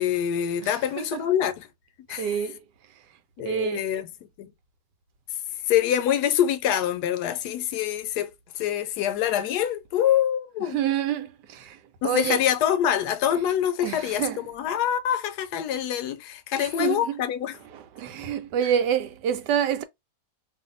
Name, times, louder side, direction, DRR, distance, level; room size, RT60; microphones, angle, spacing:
voice 1, 0.0-1.7 2.1-2.3 3.4-4.1 4.4-4.5 5.7-10.8 12.0-17.5, left 10 dB, 80° left, 1.1 m, -25 dB
voice 2, 0.6-1.2 2.1-2.6 2.9-3.0 3.4-3.9 10.6-12.4 13.8-14.4 16.6-17.2 17.7-19.8, right 9 dB, 85° right, 1.2 m, -28 dB
2.6 x 2.5 x 3.7 m
omnidirectional pair, 1.8 m